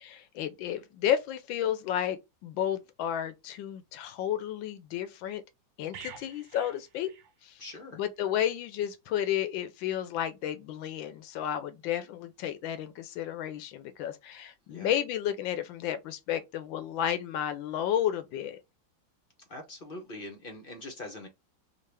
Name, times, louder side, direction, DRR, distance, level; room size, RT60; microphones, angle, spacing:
voice 1, 0.0-5.4 5.8-7.1 7.4-7.6 7.9-18.6, left 10 dB, 75° left, 1.3 m, -32 dB
sound 1, 5.9-7.8 8.1-8.3, right 7 dB, 70° right, 1.3 m, -49 dB
voice 2, 7.6-8.0 14.7-14.9 19.5-21.3, left 2 dB, 50° left, 0.7 m, -43 dB
3.6 x 2.4 x 3.3 m
omnidirectional pair, 2.2 m